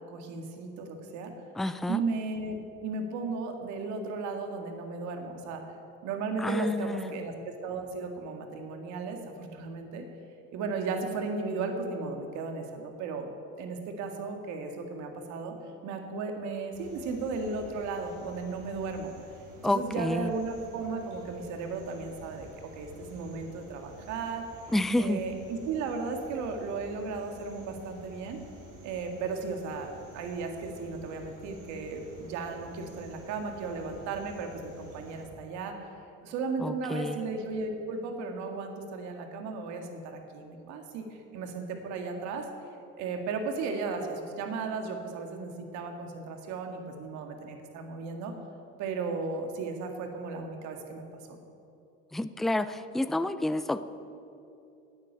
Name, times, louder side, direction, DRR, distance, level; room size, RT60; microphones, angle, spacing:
voice 1, 0.1-1.3 1.9-5.6 6.0-10.0 10.5-13.3 13.6-15.6 15.8-19.1 19.6-22.5 22.7-24.7 25.0-28.4 28.8-35.7 36.2-42.5 43.0-48.3 48.8-51.0, right 4 dB, 70° right, 4 dB, 1.9 m, -35 dB
voice 2, 1.6-2.0 6.4-7.1 19.6-20.3 24.7-25.2 36.6-37.2 52.1-53.8, left 1 dB, ahead, 12 dB, 0.4 m, -29 dB
sound 1, 16.7-35.2, right 1 dB, 85° right, 3.8 m, -51 dB
9.7 x 9.5 x 8.9 m, 2.7 s
supercardioid pair, 100°, 30 cm